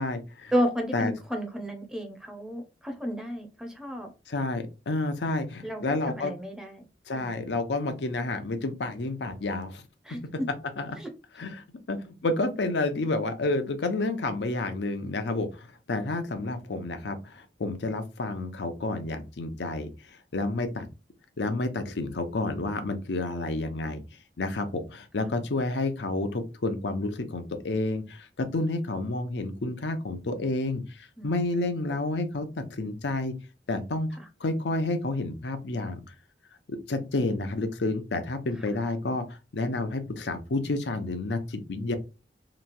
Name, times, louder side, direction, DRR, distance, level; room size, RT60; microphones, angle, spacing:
voice 1, 0.0-0.5 0.9-1.1 4.3-6.3 7.1-9.8 10.8-10.9 11.4-11.5 11.9-19.9 20.3-20.9 21.4-24.0 24.4-33.3 33.7-34.1 34.4-36.0 36.7-41.9, left 2 dB, 75° left, 0.6 m, -30 dB
voice 2, 0.5-4.1 5.6-6.9 7.1-7.4 10.0-10.5 11.0-11.1 31.2-31.5 34.2-34.3 38.7-38.8, equal, 5° right, 0.6 m, -32 dB
2.9 x 2.2 x 2.5 m
head